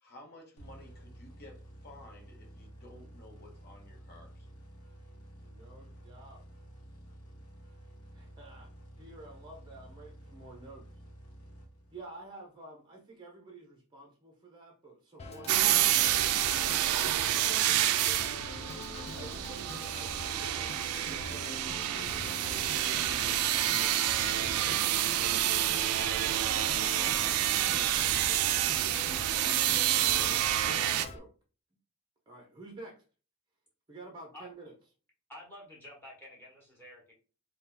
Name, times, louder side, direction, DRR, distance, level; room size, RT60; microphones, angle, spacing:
voice 1, 0.0-4.5, left 1 dB, 50° left, 1 dB, 1.0 m, -54 dB
sound 1, 0.6-12.2, right 1 dB, 80° left, 1.0 m, -51 dB
voice 2, 5.5-6.4 8.1-8.7 9.0-10.8 11.9-18.3 19.1-23.9 24.4-25.6 26.3-29.0 29.4-30.4 30.9-31.3 32.3-33.0 33.9-34.7, right 2 dB, 20° right, 0 dB, 0.6 m, -51 dB
Organ, 15.2-31.2, left 3 dB, 30° left, 0.4 m, -44 dB
sound 2, 15.5-31.1, right 12 dB, 80° right, 0.3 m, -28 dB
voice 3, 35.3-37.1, left 1 dB, 10° left, -3 dB, 1.2 m, -49 dB
2.7 x 2.2 x 3.8 m, 0.37 s
head